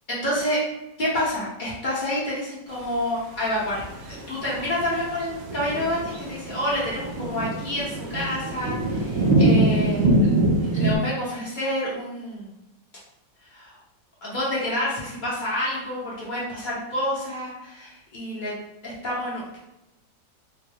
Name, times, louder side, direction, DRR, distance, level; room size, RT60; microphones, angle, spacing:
voice 1, 0.1-0.6 1.0-6.0 6.3-10.3 10.6-12.5 13.5-13.8 14.2-18.5 18.8-19.6, left 1 dB, 35° left, -8 dB, 0.8 m, -28 dB
sound 1, 3.7-11.0, right 2 dB, 90° right, 1.4 m, -23 dB
3.6 x 2.0 x 3.4 m, 0.91 s
omnidirectional pair, 2.1 m